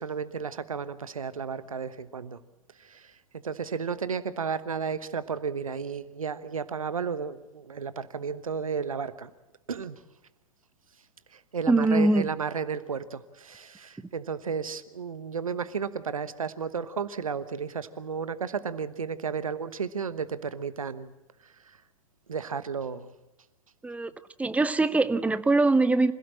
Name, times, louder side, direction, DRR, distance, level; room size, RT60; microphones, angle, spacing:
voice 1, 0.0-2.4 2.8-3.1 3.4-9.3 9.7-10.0 11.5-21.1 22.3-23.1, right 6 dB, 80° right, 1.1 m, -33 dB
voice 2, 11.7-12.3 23.8-24.1 24.4-26.1, right 2 dB, 10° right, 0.8 m, -22 dB
26.5 x 16.5 x 7.5 m
figure-of-eight pair, 90°, 18 cm